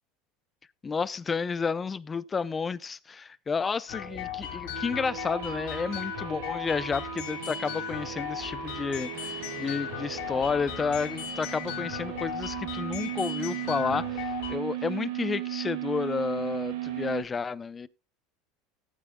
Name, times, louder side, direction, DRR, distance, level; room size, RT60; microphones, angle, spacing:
voice 1, 0.8-17.9, left 5 dB, 25° left, 0.6 m, -31 dB
sound 1, 3.9-14.6, left 9 dB, 75° left, 3.5 m, -37 dB
sound 2, 4.7-17.2, right 14 dB, 80° right, 2.1 m, -37 dB
18.0 x 9.0 x 2.3 m
supercardioid pair, 105°, 0 cm